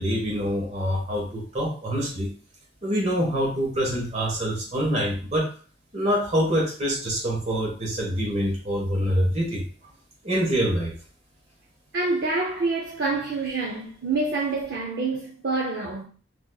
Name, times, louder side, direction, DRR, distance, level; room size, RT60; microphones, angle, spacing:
voice 1, 0.0-2.3 2.8-5.5 5.9-9.6 10.2-10.9, equal, 35° right, 1.1 m, -25 dB
voice 2, 11.9-16.0, right 3 dB, 55° right, 0.5 m, -27 dB
3.4 x 2.8 x 2.2 m
head